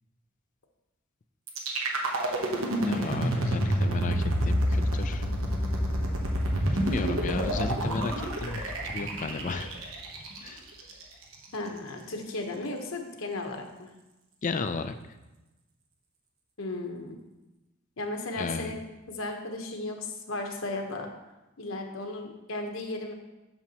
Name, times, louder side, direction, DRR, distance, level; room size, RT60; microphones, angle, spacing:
sound 1, 1.5-11.5, right 1 dB, 75° right, 1.1 m, -28 dB
voice 1, 2.8-5.3 6.7-9.7 10.4-10.6 14.4-14.9 18.4-18.7, left 4 dB, 40° left, 9 dB, 0.4 m, -33 dB
voice 2, 11.5-13.9 16.6-17.2 18.0-21.1 21.6-23.1, left 2 dB, 70° left, 3 dB, 1.0 m, -35 dB
9.1 x 6.4 x 2.9 m, 1.0 s
head